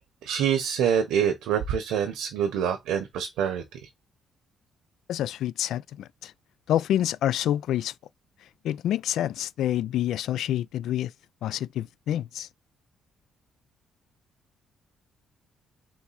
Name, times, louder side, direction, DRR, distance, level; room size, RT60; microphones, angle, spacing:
voice 1, 0.2-3.8, right 8 dB, 90° right, 1.1 m, -26 dB
voice 2, 5.1-6.3 6.7-7.9 8.6-11.1 11.4-12.5, left 11 dB, 80° left, 0.3 m, -27 dB
4.4 x 2.7 x 4.2 m
cardioid pair, 90°, 0 cm